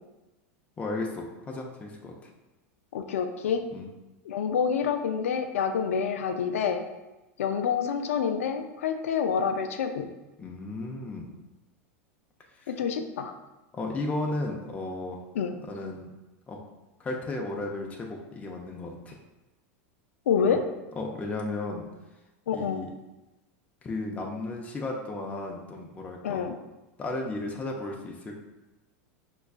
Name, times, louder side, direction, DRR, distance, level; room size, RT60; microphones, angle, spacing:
voice 1, 0.8-2.3 3.7-3.9 10.4-11.4 12.5-12.7 13.7-15.2 15.7-16.1 16.5-16.6 17.0-19.2 20.5-20.6 21.0-21.9 22.5-22.9 23.8-26.5 27.0-28.4, left 2 dB, 20° left, 0 dB, 0.5 m, -34 dB
voice 2, 2.9-3.6 4.3-6.8 7.4-10.1 12.7-13.3 15.4-15.5 20.3-20.6 22.5-22.8 26.2-26.5, left 7 dB, 85° left, 7 dB, 0.4 m, -27 dB
5.2 x 2.3 x 2.3 m, 1.1 s
hypercardioid pair, 115°, 7 cm